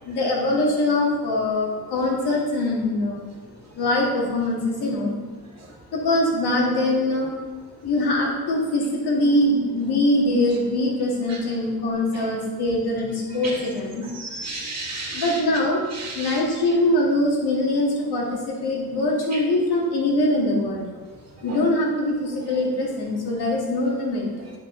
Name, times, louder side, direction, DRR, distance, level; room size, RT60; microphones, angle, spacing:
voice 1, 0.0-3.3 3.8-5.2 5.9-7.4 7.8-14.1 15.1-15.9 16.1-20.9 21.4-24.5, left 1 dB, 85° left, -2 dB, 2.1 m, -23 dB
voice 2, 14.1-15.4 15.9-16.4 19.3-19.4 21.5-21.6, right 3 dB, 45° right, -2 dB, 2.2 m, -33 dB
10.0 x 5.4 x 3.9 m, 1.3 s
cardioid pair, 110°, 38 cm